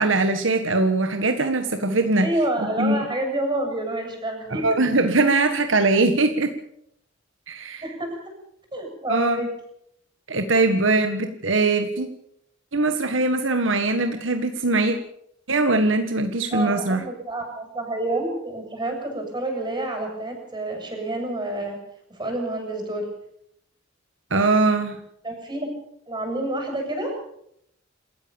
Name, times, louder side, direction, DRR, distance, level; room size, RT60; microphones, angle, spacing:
voice 1, 0.0-2.3 2.6-3.0 4.5-6.5 7.5-7.9 9.1-9.4 10.3-12.1 12.7-15.0 15.5-17.1 24.3-25.0, right 2 dB, 70° right, 7 dB, 1.7 m, -21 dB
voice 2, 2.2-4.7 7.8-8.2 8.7-9.5 16.5-21.8 22.1-23.0 25.2-25.7 26.1-27.1, right 1 dB, 20° right, 3 dB, 7.9 m, -28 dB
27.0 x 14.5 x 7.2 m, 0.75 s
head